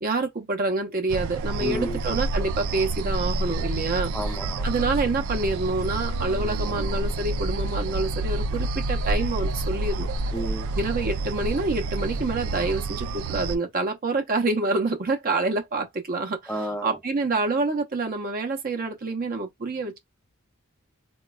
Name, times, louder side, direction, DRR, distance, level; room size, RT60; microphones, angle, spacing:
voice 1, 0.0-4.1 4.6-10.1 10.7-16.5 16.8-20.0, right 3 dB, 40° right, 0.6 m, -27 dB
sound 1, 1.1-13.6, right 2 dB, 90° right, 0.4 m, -28 dB
voice 2, 1.6-2.0 4.1-4.7 10.3-10.7 16.5-17.0, right 1 dB, 5° left, 0.5 m, -31 dB
4.0 x 2.2 x 2.2 m
head